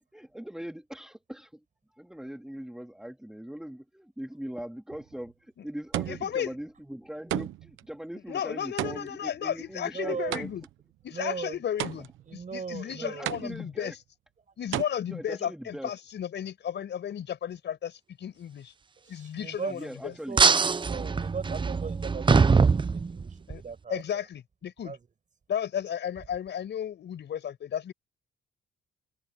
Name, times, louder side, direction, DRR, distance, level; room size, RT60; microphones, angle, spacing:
voice 1, 0.1-1.6 1.9-10.5 12.8-14.0 15.1-15.9 19.7-20.4, equal, 5° right, 2.4 m, -41 dB
sound 1, 4.9-5.3 5.9-6.5 7.3-7.8 8.8-10.8 11.8-12.4 13.3-13.9 14.7-14.8, right 14 dB, 85° right, 1.1 m, -34 dB
voice 2, 6.1-6.5 8.3-10.6 11.0-13.9 14.6-18.7 19.1-20.1 23.5-23.6 23.9-25.0 25.5-27.9, left 9 dB, 65° left, 5.6 m, -34 dB
voice 3, 9.9-10.4 11.1-11.6 12.3-13.3 19.1-19.7 20.0-20.6 20.9-24.0 24.8-25.0, right 5 dB, 40° right, 5.8 m, -38 dB
sound 2, 20.4-23.6, right 5 dB, 25° right, 0.7 m, -23 dB
cardioid pair, 90°, 20 cm